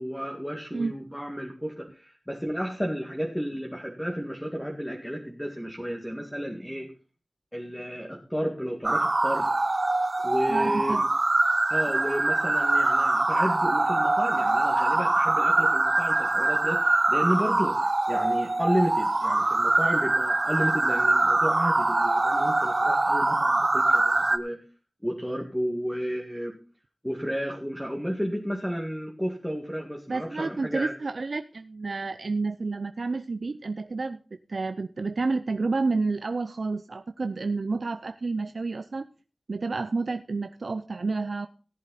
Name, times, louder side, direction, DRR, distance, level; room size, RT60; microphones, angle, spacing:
voice 1, 0.0-6.9 7.5-9.5 10.2-11.1 11.7-24.6 25.0-26.6 27.0-30.9, equal, 5° left, 1 dB, 2.0 m, -32 dB
sound 1, 8.8-24.4, right 2 dB, 45° right, 0.8 m, -23 dB
voice 2, 10.5-11.0 30.1-34.2 34.5-39.0 39.5-41.5, right 3 dB, 70° right, 9 dB, 0.5 m, -30 dB
17.0 x 7.5 x 4.1 m, 0.37 s
cardioid pair, 45°, 0 cm